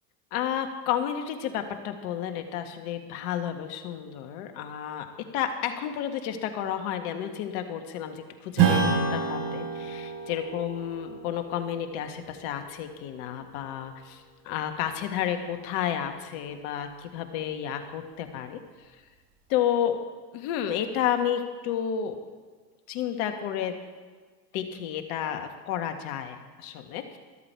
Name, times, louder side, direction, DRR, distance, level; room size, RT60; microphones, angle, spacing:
voice 1, 0.3-5.1 5.3-18.6 19.5-20.0 20.3-22.2 22.9-23.7 24.5-27.2, left 9 dB, 60° left, 6 dB, 1.7 m, -31 dB
Strum, 8.6-13.5, right 6 dB, 60° right, 5.2 m, -29 dB
13.0 x 13.0 x 4.7 m, 1.5 s
hypercardioid pair, 100°, 50 cm